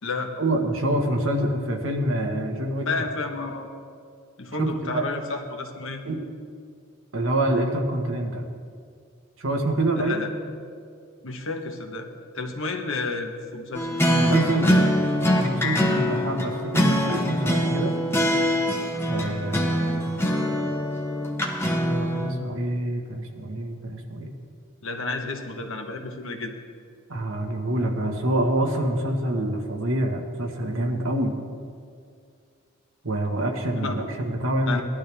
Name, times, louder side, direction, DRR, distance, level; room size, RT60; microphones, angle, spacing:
voice 1, 0.4-2.9 4.6-5.0 6.1-6.2 7.1-8.5 9.4-10.2 14.1-14.7 15.4-17.9 19.1-20.3 21.9-24.3 27.1-31.3 33.0-34.8, right 1 dB, 65° right, 2 dB, 1.5 m, -26 dB
voice 2, 2.8-3.7 4.4-6.0 10.0-10.3 11.2-12.1 12.3-14.0 14.3-14.9 24.8-26.6 33.7-34.0 34.7-34.8, left 3 dB, 65° left, 4 dB, 1.3 m, -31 dB
sound 1, 13.7-22.3, equal, 10° left, 1.0 m, -23 dB
18.5 x 12.0 x 3.5 m, 2.2 s
head